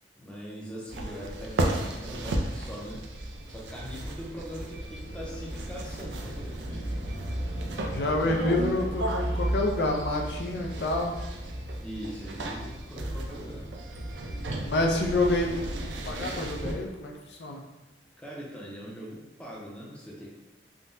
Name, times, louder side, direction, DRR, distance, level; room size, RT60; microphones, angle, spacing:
voice 1, 0.2-6.9 11.8-13.7 17.2-17.4 18.2-20.3, equal, 5° left, -5 dB, 0.5 m, -41 dB
sound 1, 0.9-16.7, right 1 dB, 85° right, 0.4 m, -33 dB
voice 2, 7.9-11.1 14.6-15.5 15.8-17.6, left 2 dB, 75° left, 1 dB, 0.4 m, -28 dB
3.6 x 2.1 x 2.6 m, 1.1 s
head